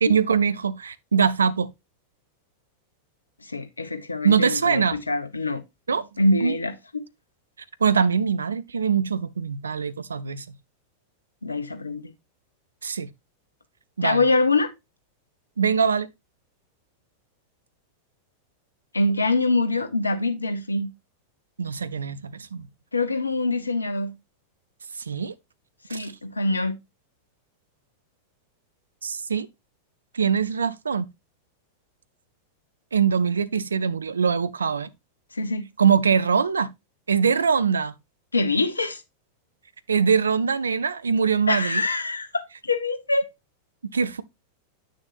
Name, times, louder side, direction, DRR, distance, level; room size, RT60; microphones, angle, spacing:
voice 1, 0.0-1.7 4.2-5.0 5.9-6.1 6.4-6.6 7.8-10.4 12.8-13.1 14.0-14.2 15.6-16.1 21.6-22.7 25.1-25.3 25.9-26.1 29.0-29.5 30.1-31.1 32.9-34.9 35.8-36.7 37.1-37.9 39.9-41.8 43.9-44.2, right 6 dB, 75° right, 0.5 m, -22 dB
voice 2, 3.4-5.6 6.2-6.8 11.4-12.1 14.0-14.7 18.9-20.9 22.9-24.2 25.9-26.8 35.3-35.7 38.3-39.0 41.5-43.3, left 2 dB, 80° left, 0.9 m, -24 dB
9.0 x 6.4 x 2.6 m
figure-of-eight pair, 90°, 0 cm